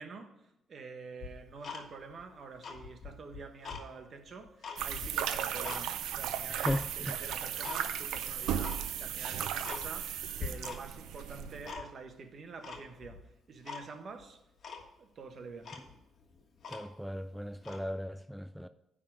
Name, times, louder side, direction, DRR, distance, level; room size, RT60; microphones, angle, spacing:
voice 1, 0.0-14.4 15.0-15.8, right 4 dB, 50° right, 1.1 m, -47 dB
Tick-tock, 1.2-2.2 2.5-3.9 4.3-5.8 6.2-6.8 7.3-7.8 8.1-8.2 8.6-8.8 9.2-9.3 9.6-10.1 10.4-11.0 11.3-12.1 12.6-13.2 13.6-13.8 14.2-14.3 14.6-14.9 15.3-15.4 15.6-17.1 17.6-17.8, left 5 dB, 55° left, 1.5 m, -43 dB
sound 1, 4.8-11.7, right 9 dB, 90° right, 0.5 m, -36 dB
voice 2, 6.5-7.2 16.7-18.7, equal, ahead, 0.3 m, -36 dB
9.7 x 3.8 x 6.2 m
cardioid pair, 90°, 0 cm